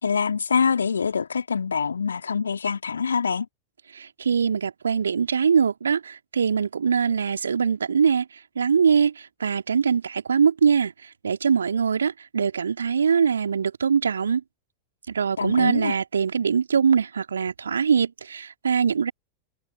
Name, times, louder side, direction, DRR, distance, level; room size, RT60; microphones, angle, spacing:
voice 1, 0.0-3.5 15.4-16.0, left 6 dB, 75° left, 3.4 m, -25 dB
voice 2, 3.9-8.2 8.6-9.1 9.4-10.9 11.2-14.4 15.1-19.1, right 6 dB, 70° right, 3.0 m, -22 dB
figure-of-eight pair, 90°, 0 cm